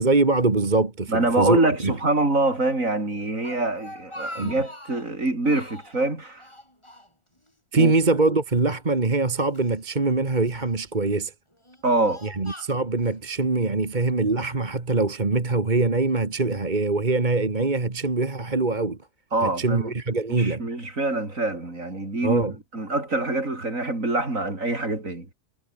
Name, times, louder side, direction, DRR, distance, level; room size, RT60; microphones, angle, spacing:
voice 1, 0.0-1.9 4.4-4.5 7.7-11.3 12.2-19.0 19.4-20.6 22.2-22.5, right 3 dB, 30° right, 2.0 m, -23 dB
voice 2, 1.1-6.4 7.7-7.9 11.8-12.2 19.3-19.9 20.4-22.4 22.7-25.3, right 2 dB, 70° right, 5.9 m, -25 dB
Speech, 3.2-5.1 5.4-6.0 6.4-7.5 7.8-7.9 8.7-9.8 10.4-10.9 11.5-13.2, left 1 dB, 20° left, 6.2 m, -42 dB
omnidirectional pair, 1.5 m